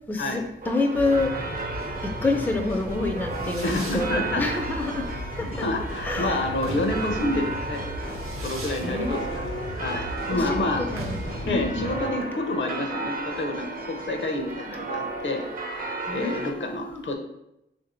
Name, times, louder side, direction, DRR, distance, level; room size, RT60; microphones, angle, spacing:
voice 1, 0.1-1.4 2.2-5.1 5.4-5.5 6.0-6.4 8.8-9.7 10.3-11.2 11.4-11.9 16.1-17.0, left 3 dB, 10° left, 4 dB, 0.3 m, -28 dB
sound 1, 0.6-16.5, right 3 dB, 45° right, 0.5 m, -34 dB
sound 2, 0.9-12.1, left 1 dB, 85° left, 1.0 m, -36 dB
Fireworks, 3.1-15.2, right 1 dB, 85° right, 0.7 m, -41 dB
voice 2, 3.6-4.4 5.6-10.8 11.4-15.4 15.7-17.1, left 2 dB, 65° left, 4 dB, 0.6 m, -29 dB
3.2 x 2.6 x 4.1 m, 0.85 s
wide cardioid pair, 140°, 21 cm